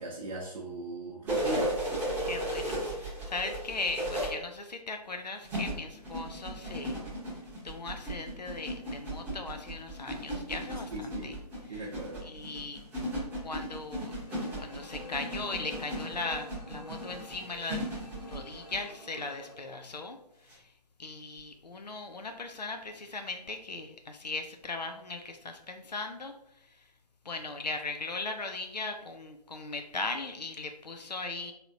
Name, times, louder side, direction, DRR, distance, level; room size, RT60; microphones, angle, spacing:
voice 1, 0.0-1.7 10.9-11.4 11.7-12.2, right 2 dB, 60° right, -3 dB, 0.7 m, -38 dB
sound 1, 1.3-4.3 5.4-18.8 20.5-20.6, right 1 dB, 10° right, 0.8 m, -35 dB
voice 2, 2.2-7.0 7.6-11.3 11.7-11.9 12.2-12.8 13.4-14.1 14.6-17.8 18.3-20.2 20.5-20.6 21.0-26.3 27.2-31.5, left 3 dB, 90° left, 6 dB, 0.4 m, -38 dB
sound 2, 14.3-19.6, left 2 dB, 35° left, 0.7 m, -49 dB
3.2 x 2.8 x 2.6 m, 0.78 s
figure-of-eight pair, 135°, 21 cm